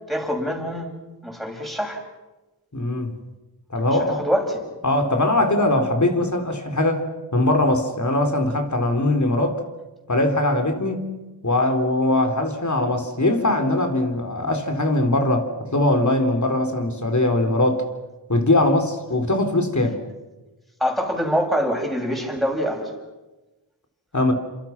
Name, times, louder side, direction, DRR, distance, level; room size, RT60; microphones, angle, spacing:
voice 1, 0.1-0.9 1.2-2.0 4.2-4.6 20.8-22.9, equal, ahead, 1 dB, 7.7 m, -24 dB
voice 2, 2.7-3.1 3.7-4.2 4.8-7.0 7.3-9.6 10.1-11.1 11.4-17.8 18.3-20.0 24.1-24.3, left 2 dB, 45° left, 5 dB, 4.2 m, -21 dB
30.0 x 27.0 x 6.1 m, 1.1 s
wide cardioid pair, 55°, 41 cm